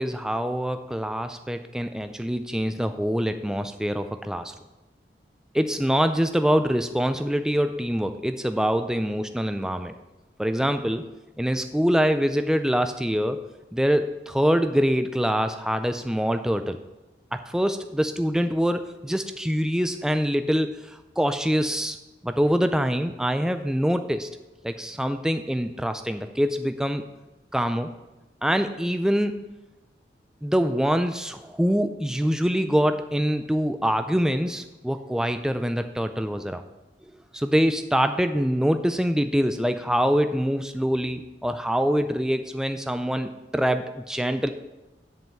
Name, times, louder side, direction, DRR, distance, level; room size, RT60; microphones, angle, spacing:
voice 1, 0.0-4.5 5.5-9.9 10.4-11.1 11.4-13.4 13.7-16.8 17.3-22.0 22.2-24.3 24.6-27.1 27.5-27.9 28.4-29.4 30.4-36.6 37.3-44.5, equal, 5° right, 8 dB, 0.3 m, -24 dB
7.5 x 5.6 x 7.5 m, 1.0 s
head